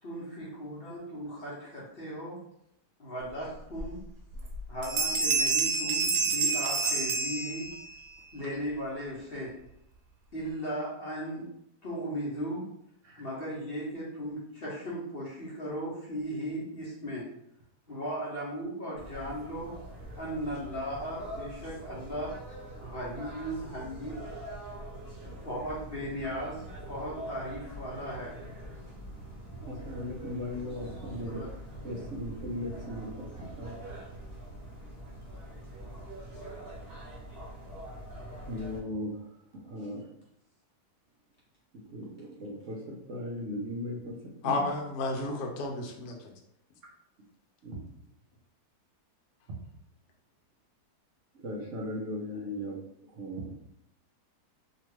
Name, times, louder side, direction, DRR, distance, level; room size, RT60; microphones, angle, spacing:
voice 1, 0.0-2.4 3.0-4.0 4.7-7.7 8.3-9.5 10.3-11.5 11.8-12.6 13.2-17.3 17.9-19.7 20.2-22.3 22.7-24.2 25.2-28.3 31.2-31.5 31.8-32.0, equal, 50° left, -7 dB, 0.7 m, -37 dB
Bell, 3.8-3.9 4.3-4.6 4.8-8.0, right 4 dB, 80° right, 1.1 m, -28 dB
sound 1, 18.9-38.8, right 1 dB, 15° right, 0.8 m, -44 dB
voice 2, 29.6-31.5 31.8-33.1 33.6-33.7 38.5-39.1 39.6-40.1 41.9-44.2 44.4-44.7 47.6-47.8 51.4-52.8 53.1-53.5, left 1 dB, 60° right, -2 dB, 0.9 m, -37 dB
voice 3, 44.4-46.2, left 2 dB, 75° left, 2 dB, 1.0 m, -31 dB
2.8 x 2.2 x 3.1 m, 0.76 s
omnidirectional pair, 1.7 m